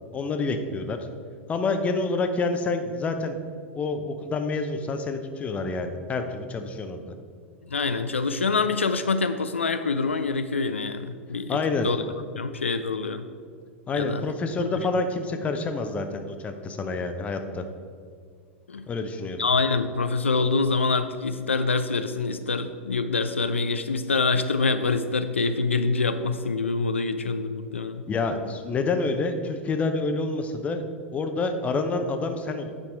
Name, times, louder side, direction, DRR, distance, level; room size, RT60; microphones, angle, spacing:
voice 1, 0.1-1.0 1.5-3.4 3.8-7.1 11.5-11.9 13.9-17.6 18.9-19.5 28.1-30.9 31.1-32.7, left 3 dB, 20° left, 7 dB, 0.7 m, -28 dB
voice 2, 7.7-11.6 11.8-12.0 12.4-13.3 13.9-14.2 14.8-14.9 18.7-18.9 19.4-28.1, left 4 dB, 80° left, 9 dB, 0.4 m, -25 dB
8.7 x 5.7 x 4.6 m, 2.1 s
figure-of-eight pair, 90°, 7 cm